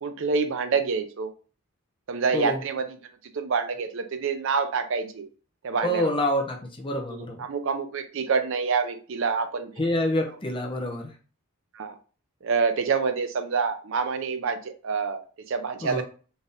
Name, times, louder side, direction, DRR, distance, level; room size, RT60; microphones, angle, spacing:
voice 1, 0.0-1.3 2.1-3.0 3.3-5.3 5.6-6.1 7.1-9.7 11.7-12.0 12.4-16.0, right 5 dB, 60° right, 9 dB, 0.5 m, -27 dB
voice 2, 5.8-7.4 9.8-11.1 15.8-16.0, left 1 dB, 25° left, 2 dB, 0.7 m, -27 dB
4.1 x 2.5 x 3.5 m, 0.37 s
head